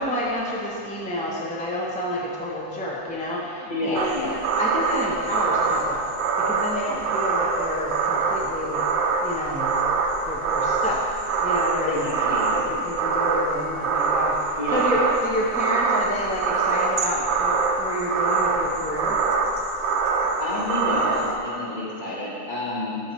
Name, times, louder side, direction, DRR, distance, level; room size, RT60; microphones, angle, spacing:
voice 1, 0.0-4.2 4.6-6.1 6.4-8.9 9.2-9.8 10.3-19.2, equal, 10° left, -5 dB, 0.4 m, -29 dB
voice 2, 3.7-4.4 11.9-12.5 14.6-14.8 20.4-23.0, left 2 dB, 35° left, -7 dB, 1.6 m, -29 dB
sound 1, 4.0-21.4, right 4 dB, 90° right, 1.1 m, -24 dB
12.5 x 4.5 x 3.1 m, 2.6 s
omnidirectional pair, 1.4 m